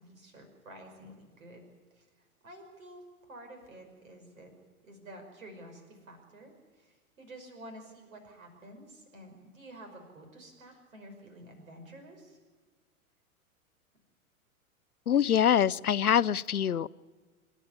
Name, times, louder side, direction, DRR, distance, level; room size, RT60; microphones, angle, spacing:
voice 1, 0.0-1.6 2.0-2.1 2.4-4.5 4.8-12.4, right 1 dB, 65° right, 5 dB, 5.6 m, -50 dB
voice 2, 15.1-16.9, left 9 dB, 85° left, 20 dB, 0.6 m, -24 dB
26.0 x 11.0 x 9.7 m, 1.4 s
figure-of-eight pair, 95°, 43 cm